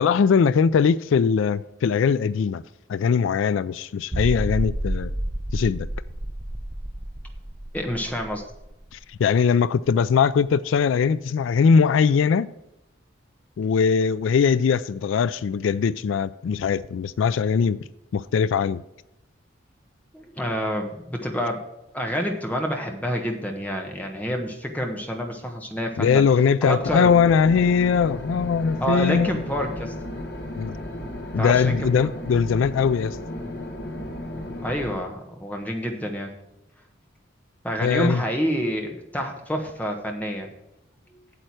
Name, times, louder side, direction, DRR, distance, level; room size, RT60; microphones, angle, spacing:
voice 1, 0.0-2.6 2.9-5.1 5.5-5.9 8.9-12.5 13.6-17.8 18.1-18.8 26.0-29.4 30.5-30.8 31.3-33.2 37.8-38.2, left 6 dB, 85° left, 0.3 m, -21 dB
sound 1, 4.1-9.6 9.9-10.0 10.5-10.6, right 1 dB, 20° right, 0.6 m, -30 dB
voice 2, 7.7-8.4 20.1-21.6 21.9-26.2 26.6-27.1 28.8-29.9 31.4-32.1 34.6-36.3 37.6-40.5, equal, 10° left, 1.2 m, -28 dB
sound 2, 26.8-34.9, left 1 dB, 65° left, 1.7 m, -34 dB
8.5 x 7.8 x 4.8 m
head